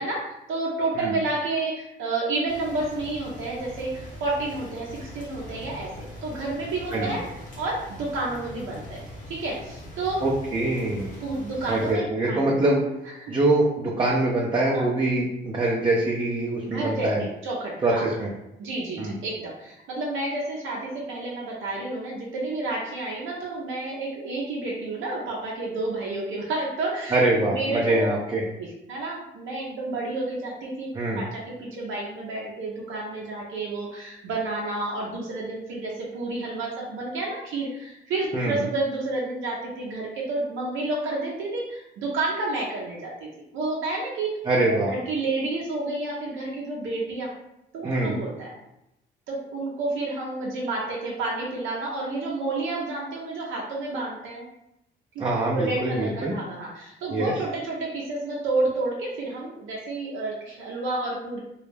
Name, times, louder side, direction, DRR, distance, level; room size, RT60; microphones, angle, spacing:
voice 1, 0.0-7.2 7.6-9.0 9.3-10.2 11.2-12.5 13.3-13.4 14.7-14.9 16.6-18.0 18.6-28.1 28.6-30.9 31.2-43.3 43.5-44.4 44.7-47.3 47.7-48.5 49.3-54.4 55.4-61.4, right 2 dB, 80° right, -4 dB, 0.5 m, -30 dB
sound 1, 2.5-11.9, left 1 dB, 40° left, 0.9 m, -42 dB
voice 2, 10.2-11.1 11.7-12.8 13.3-17.2 17.8-18.3 19.0-19.2 27.1-28.4 30.9-31.2 38.3-38.6 44.5-44.9 47.8-48.2 55.2-56.3 57.1-57.3, right 2 dB, 25° right, -4 dB, 0.4 m, -24 dB
2.2 x 2.0 x 3.2 m, 0.86 s
cardioid pair, 90°, 20 cm